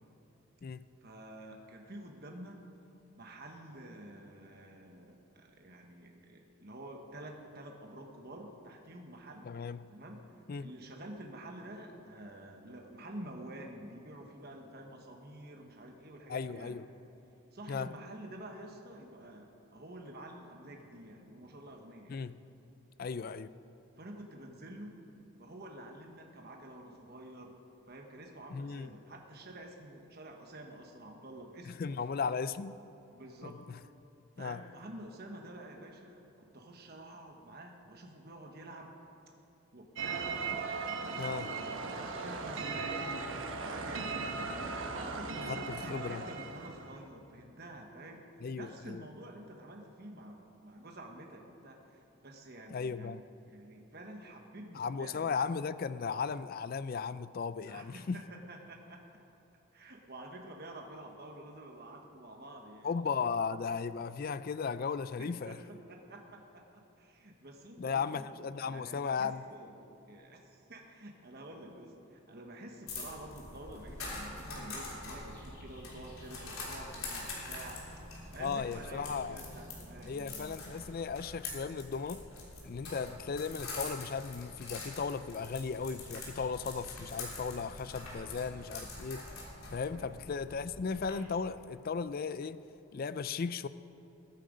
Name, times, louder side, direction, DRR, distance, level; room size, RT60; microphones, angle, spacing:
voice 1, 1.0-2.6 3.2-9.5 9.9-16.7 17.5-22.1 24.0-25.0 25.4-27.6 27.9-32.0 33.1-33.6 34.4-38.9 39.7-40.3 41.0-44.5 44.9-48.2 48.6-53.2 53.5-55.4 57.6-59.0 59.7-62.9 65.2-68.2 68.6-78.1 78.3-80.6 82.9-83.2 88.5-88.9 89.9-90.1, right 1 dB, 45° right, 1.2 m, -49 dB
voice 2, 9.4-9.9 10.5-10.7 16.3-16.9 17.7-17.9 22.1-22.4 23.0-23.5 28.5-28.9 31.7-32.8 33.4-33.8 34.4-34.6 41.2-41.5 45.5-46.2 48.4-49.0 52.7-53.2 54.7-58.2 62.8-65.6 67.8-69.4 78.4-79.4 80.1-82.2 82.6-89.2 89.7-92.6 92.9-93.7, left 5 dB, 40° left, 0.3 m, -36 dB
sound 1, 40.0-47.0, right 4 dB, 60° right, 1.2 m, -38 dB
sound 2, 72.9-91.1, left 2 dB, 75° left, 3.4 m, -45 dB
21.0 x 9.1 x 5.1 m
head